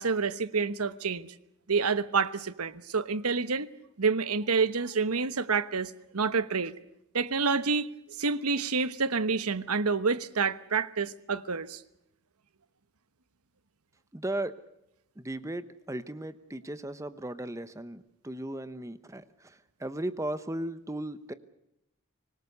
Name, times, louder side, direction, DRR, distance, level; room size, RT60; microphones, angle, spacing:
voice 1, 0.0-1.3 1.7-3.7 4.0-6.7 7.1-11.8, right 4 dB, 90° right, 1.1 m, -28 dB
voice 2, 14.1-14.5 15.2-21.3, right 1 dB, 15° right, 0.9 m, -36 dB
25.5 x 20.0 x 6.8 m
head